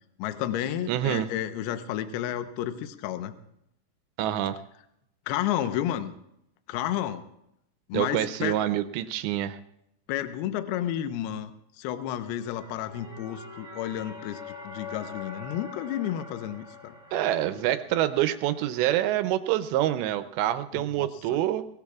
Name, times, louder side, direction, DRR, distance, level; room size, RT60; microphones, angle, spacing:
voice 1, 0.2-3.4 5.3-6.1 6.7-7.3 7.9-8.6 10.1-11.5 11.8-16.9 20.7-21.1, left 11 dB, 80° left, 9 dB, 2.4 m, -31 dB
voice 2, 0.9-1.3 4.2-4.6 7.9-9.6 17.1-21.7, right 13 dB, 80° right, 10 dB, 2.6 m, -26 dB
sound 1, 12.2-19.1, left 4 dB, 10° right, 2.4 m, -44 dB
23.0 x 19.0 x 2.4 m, 0.79 s
omnidirectional pair, 5.6 m